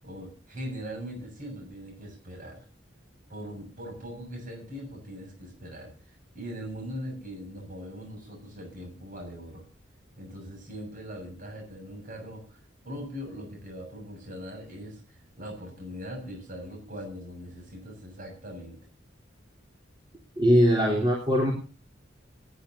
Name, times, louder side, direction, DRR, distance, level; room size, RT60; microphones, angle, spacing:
voice 1, 0.0-2.7 3.3-9.6 10.2-12.6 12.8-18.8, equal, 45° right, 2 dB, 7.3 m, -41 dB
voice 2, 20.4-21.5, equal, 25° right, -2 dB, 3.6 m, -21 dB
27.5 x 11.0 x 2.8 m, 0.35 s
head